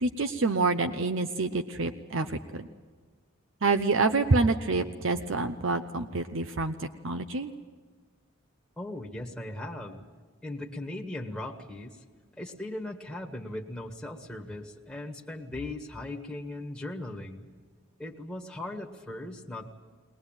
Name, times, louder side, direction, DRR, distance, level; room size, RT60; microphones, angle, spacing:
voice 1, 0.0-2.7 3.6-7.5, right 3 dB, 65° right, 8 dB, 0.8 m, -27 dB
voice 2, 8.8-10.1 10.4-12.0 12.4-17.5 18.0-19.7, left 1 dB, 5° left, -1 dB, 1.6 m, -38 dB
21.0 x 20.5 x 9.0 m, 1.4 s
head